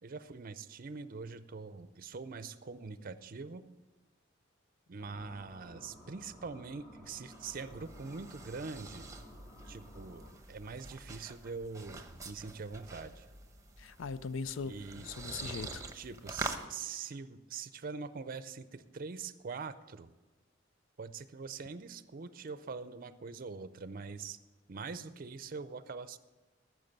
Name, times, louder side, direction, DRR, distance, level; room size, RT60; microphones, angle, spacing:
voice 1, 0.0-3.7 4.9-9.1 9.7-13.3 14.6-15.1 15.9-20.1 21.0-24.4 24.7-26.2, right 4 dB, 50° right, 13 dB, 0.5 m, -43 dB
sound 1, 5.0-10.3, left 1 dB, 25° left, 4.8 m, -55 dB
sound 2, 7.0-16.7, right 3 dB, 15° right, 0.9 m, -46 dB
voice 2, 13.8-15.8, left 5 dB, 80° left, 16 dB, 0.5 m, -40 dB
14.0 x 6.3 x 6.6 m, 1.2 s
head